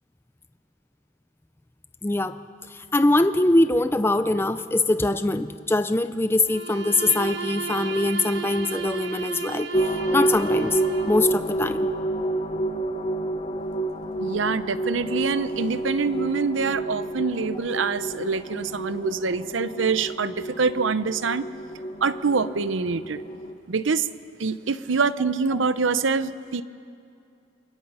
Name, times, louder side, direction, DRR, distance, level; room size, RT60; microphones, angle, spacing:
voice 1, 2.0-2.4 2.7-10.8 11.1-11.9, left 2 dB, 10° left, 10 dB, 0.4 m, -23 dB
Bowed string instrument, 6.4-11.4, right 6 dB, 65° right, 1.2 m, -34 dB
sound 1, 9.7-23.5, right 1 dB, 30° left, 0.8 m, -29 dB
voice 2, 14.2-21.5 22.0-23.2 23.7-24.1 24.4-26.6, right 4 dB, 85° right, 14 dB, 0.7 m, -25 dB
29.0 x 23.5 x 5.5 m, 2.5 s
head